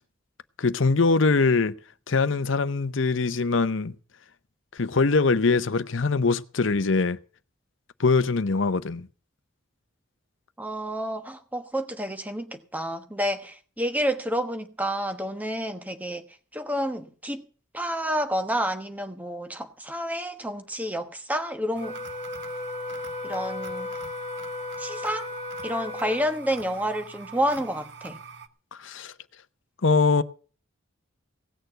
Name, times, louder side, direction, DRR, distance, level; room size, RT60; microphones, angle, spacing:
voice 1, 0.6-1.7 2.1-3.9 4.7-7.2 8.0-9.1 28.7-29.1 29.8-30.2, left 4 dB, 65° left, 0.7 m, -22 dB
voice 2, 10.6-16.2 16.5-17.4 17.7-21.9 23.2-23.9 24.8-25.3 25.6-28.2, equal, 10° right, 1.2 m, -29 dB
sound 1, 21.7-28.5, right 5 dB, 55° right, 1.0 m, -44 dB
Wind instrument woodwind instrument, 21.8-26.4, left 2 dB, 30° left, 1.1 m, -35 dB
17.5 x 6.8 x 7.8 m
head